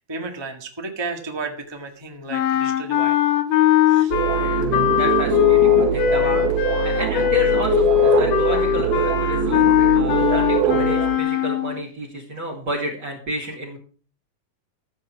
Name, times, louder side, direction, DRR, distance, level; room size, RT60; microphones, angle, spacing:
voice 1, 0.0-3.2 3.9-4.1 6.1-6.4 6.8-7.0, right 3 dB, 15° right, 3 dB, 0.8 m, -33 dB
sound 1, 2.3-11.9, left 12 dB, 80° left, 2.6 m, -20 dB
sound 2, 4.1-11.2, right 11 dB, 75° right, 2.3 m, -23 dB
voice 2, 5.0-6.5 6.8-9.7 9.9-13.8, equal, 40° right, 3 dB, 2.8 m, -30 dB
14.0 x 7.5 x 5.9 m, 0.41 s
omnidirectional pair, 3.8 m